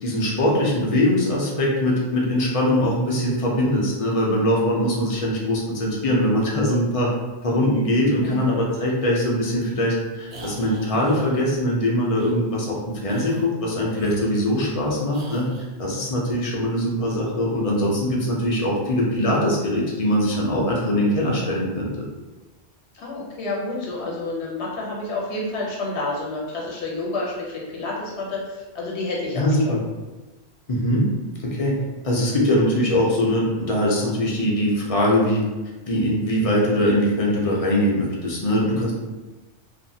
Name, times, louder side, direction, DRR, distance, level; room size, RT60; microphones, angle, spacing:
voice 1, 0.0-7.1 7.4-12.8 13.0-15.5 15.8-21.9 29.4-29.8 30.7-31.1 31.4-35.4 35.9-38.9, left 1 dB, 40° left, -3 dB, 0.5 m, -22 dB
sound 1, 10.3-11.4 12.1-12.3 13.0-13.5 13.9-14.8 15.1-15.7, right 1 dB, 75° right, 0.9 m, -42 dB
voice 2, 22.9-29.8 38.5-38.8, left 2 dB, 75° left, -3 dB, 1.0 m, -29 dB
2.5 x 2.5 x 2.7 m, 1.2 s
omnidirectional pair, 1.1 m